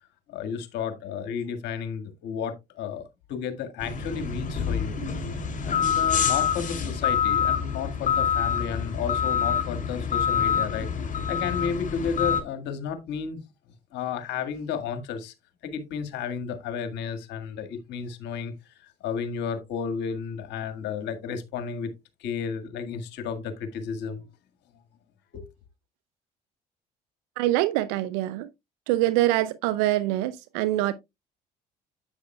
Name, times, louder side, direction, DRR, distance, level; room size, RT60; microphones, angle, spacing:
voice 1, 0.3-5.0 5.6-10.9 11.3-13.4 13.9-15.3 15.6-21.9 22.2-24.3 25.3-25.4, left 6 dB, 70° left, 1.7 m, -32 dB
sound 1, 3.8-12.4, left 7 dB, 45° left, 2.8 m, -26 dB
voice 2, 27.4-28.5 28.9-30.9, right 15 dB, 80° right, 0.5 m, -24 dB
9.6 x 7.9 x 2.2 m
hypercardioid pair, 60°, 19 cm